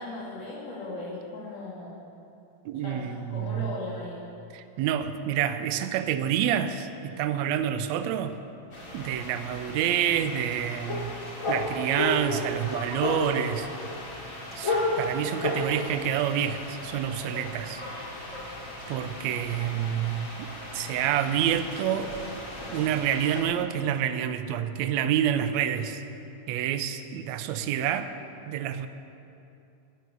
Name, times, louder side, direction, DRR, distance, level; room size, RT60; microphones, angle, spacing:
voice 1, 0.0-2.0 2.8-3.0 3.3-4.2, left 2 dB, 90° left, -6 dB, 4.5 m, -37 dB
voice 2, 2.7-3.8 4.5-8.4 8.9-11.1 11.5-13.7 14.6-17.8 18.9-20.4 20.7-22.1 22.7-26.0 26.5-28.1 28.5-28.9, right 9 dB, 75° right, 10 dB, 1.8 m, -28 dB
sound 1, 8.7-23.4, left 2 dB, 25° left, 2.6 m, -34 dB
13.5 x 9.5 x 9.4 m, 2.7 s
omnidirectional pair, 3.6 m